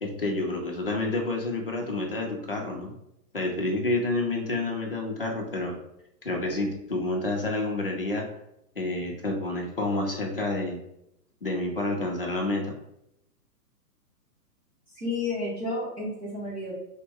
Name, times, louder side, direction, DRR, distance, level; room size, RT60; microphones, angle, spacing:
voice 1, 0.0-2.9 3.3-5.8 6.2-8.3 8.8-10.8 11.4-12.7, left 2 dB, 40° left, 0 dB, 0.4 m, -29 dB
voice 2, 14.9-16.8, left 2 dB, 10° right, -12 dB, 1.2 m, -31 dB
3.4 x 2.1 x 3.4 m, 0.80 s
hypercardioid pair, 170°, 49 cm